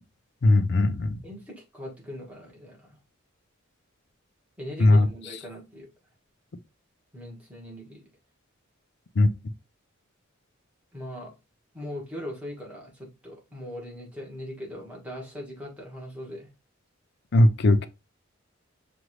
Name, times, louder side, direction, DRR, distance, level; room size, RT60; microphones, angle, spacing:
voice 1, 0.4-1.2 4.8-5.1 9.2-9.3 17.3-17.9, left 2 dB, 55° left, 0.5 m, -19 dB
voice 2, 1.2-3.0 4.6-5.9 7.1-8.0 10.9-11.3 11.7-16.5, equal, 5° right, 1.4 m, -40 dB
6.2 x 2.5 x 3.1 m
head